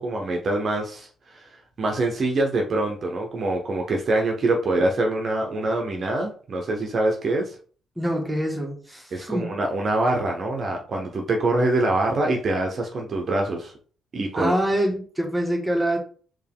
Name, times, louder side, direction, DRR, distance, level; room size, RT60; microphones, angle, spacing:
voice 1, 0.0-1.5 1.8-7.6 9.1-13.7 14.1-14.5, right 2 dB, 50° right, 1 dB, 0.8 m, -24 dB
voice 2, 7.9-9.6 14.4-16.0, right 1 dB, 5° right, 0 dB, 1.5 m, -25 dB
4.5 x 3.0 x 3.6 m, 0.43 s
cardioid pair, 90°, 0 cm